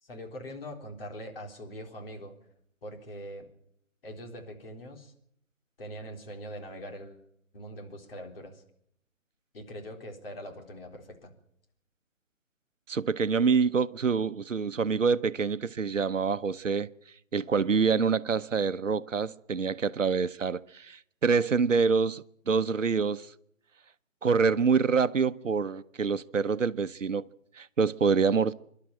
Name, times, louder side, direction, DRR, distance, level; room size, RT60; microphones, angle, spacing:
voice 1, 0.0-2.4 2.8-3.5 4.0-5.1 5.8-7.2 7.5-8.6 9.5-11.3, equal, 45° left, 3.9 m, -42 dB
voice 2, 12.9-16.9 17.3-23.3 24.2-27.2 27.6-28.5, right 5 dB, 70° right, 0.9 m, -26 dB
26.0 x 12.0 x 8.8 m
figure-of-eight pair, 150°, 40 cm